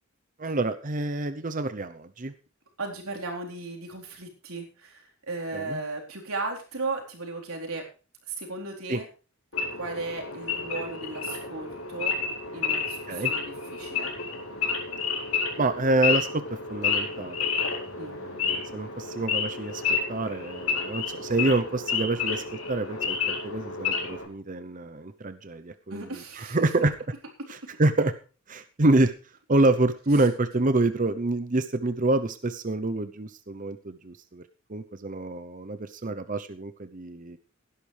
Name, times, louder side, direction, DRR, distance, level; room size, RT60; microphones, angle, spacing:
voice 1, 0.4-2.3 5.5-5.8 8.9-9.0 13.1-13.3 15.6-16.4 16.7-17.4 17.9-19.8 20.1-26.0 26.4-26.9 27.8-28.1 28.5-29.1 29.5-34.4 34.7-37.4, right 2 dB, 40° right, 10 dB, 0.8 m, -27 dB
voice 2, 2.8-7.8 8.3-9.1 9.8-12.2 12.5-14.2 18.0-18.2 25.9-26.6 27.4-27.5, right 3 dB, 90° right, 1 dB, 4.2 m, -36 dB
Wild animals / Idling, 9.5-24.3, left 5 dB, 90° left, 4.2 m, -30 dB
17.5 x 11.5 x 3.4 m, 0.36 s
head